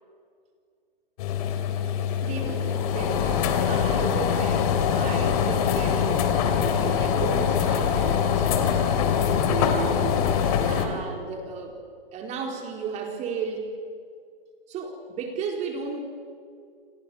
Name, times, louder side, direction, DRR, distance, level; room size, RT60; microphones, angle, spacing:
sound 1, 1.2-10.9, left 7 dB, 40° left, 3.4 m, -23 dB
voice 1, 2.2-11.7 12.1-13.7 14.7-16.0, right 5 dB, 20° right, 3 dB, 4.5 m, -34 dB
29.0 x 25.5 x 7.2 m, 2.2 s
hypercardioid pair, 145°, 30 cm